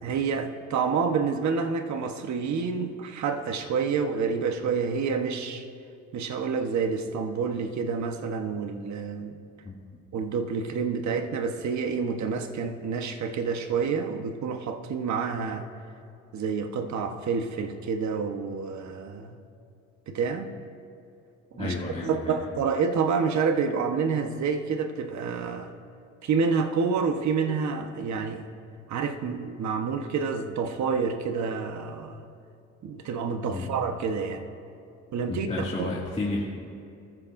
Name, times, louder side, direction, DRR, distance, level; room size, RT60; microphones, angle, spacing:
voice 1, 0.0-5.6 6.1-9.4 10.1-15.7 16.3-19.4 20.1-20.5 21.6-21.7 22.0-25.7 26.2-28.4 28.9-32.2 32.8-34.4 35.1-35.5 35.8-35.9, right 5 dB, 65° right, 6 dB, 1.3 m, -28 dB
voice 2, 21.5-22.4 33.5-33.7 35.3-36.4, left 2 dB, 20° left, -6 dB, 2.4 m, -31 dB
27.5 x 14.5 x 2.7 m, 2.5 s
cardioid pair, 90°, 30 cm